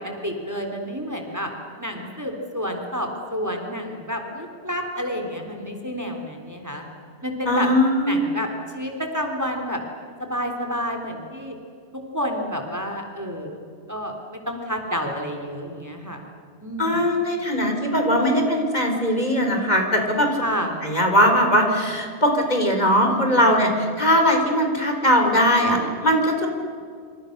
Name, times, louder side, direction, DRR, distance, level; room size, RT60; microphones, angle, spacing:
voice 1, 0.2-1.5 1.8-6.9 7.2-7.7 8.1-8.5 8.7-9.8 10.2-11.5 12.1-14.1 14.5-16.2 16.6-17.0 20.4-20.8, equal, 15° right, 3 dB, 3.5 m, -29 dB
voice 2, 7.5-8.3 16.8-20.3 20.8-26.5, equal, 40° left, 3 dB, 4.1 m, -20 dB
27.5 x 27.5 x 6.7 m, 2.4 s
omnidirectional pair, 1.2 m